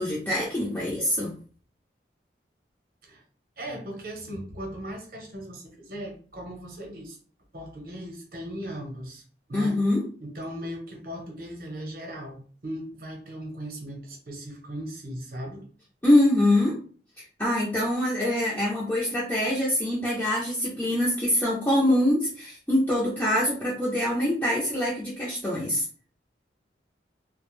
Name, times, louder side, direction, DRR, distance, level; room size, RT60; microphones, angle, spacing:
voice 1, 0.0-1.3 9.5-10.0 16.0-16.8 17.4-25.8, left 1 dB, 10° left, -6 dB, 0.5 m, -24 dB
voice 2, 3.6-7.2 7.5-9.2 9.5-9.8 10.2-15.7, equal, 50° right, 2 dB, 0.8 m, -38 dB
2.4 x 2.1 x 3.0 m, 0.41 s
head